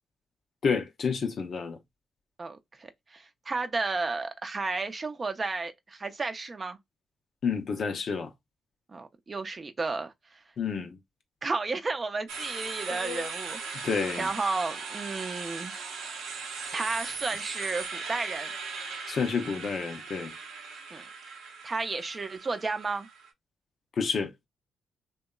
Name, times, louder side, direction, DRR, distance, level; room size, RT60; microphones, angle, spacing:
voice 1, 0.6-1.8 7.4-8.3 10.6-11.0 12.9-13.3 13.7-14.3 19.1-20.3 24.0-24.3, left 5 dB, 60° left, 0.6 m, -30 dB
voice 2, 2.4-6.8 8.9-10.4 11.4-13.8 14.2-15.7 16.7-18.5 20.9-21.1 21.6-23.1, right 3 dB, 40° right, 0.5 m, -33 dB
sound 1, 12.3-23.3, right 5 dB, 85° right, 0.6 m, -39 dB
2.8 x 2.2 x 2.3 m
supercardioid pair, 50°, 0 cm